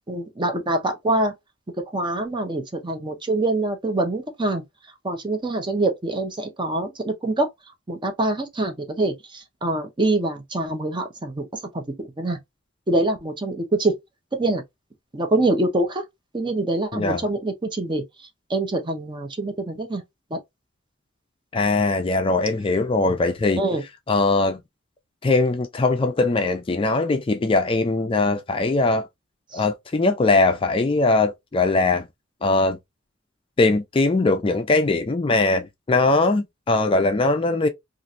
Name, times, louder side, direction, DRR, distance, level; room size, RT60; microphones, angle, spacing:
voice 1, 0.1-1.3 1.9-4.6 5.0-7.5 7.9-12.4 12.9-14.0 14.3-14.6 15.1-16.0 16.3-18.0 18.5-20.0 20.3-20.4 23.6-23.8 29.5-29.6, right 2 dB, 25° right, 0.6 m, -25 dB
voice 2, 16.9-17.3 21.5-23.6 24.1-24.6 25.2-29.1 29.5-32.1 32.4-32.8 33.6-37.7, left 3 dB, 25° left, 0.4 m, -21 dB
3.0 x 2.5 x 2.5 m
head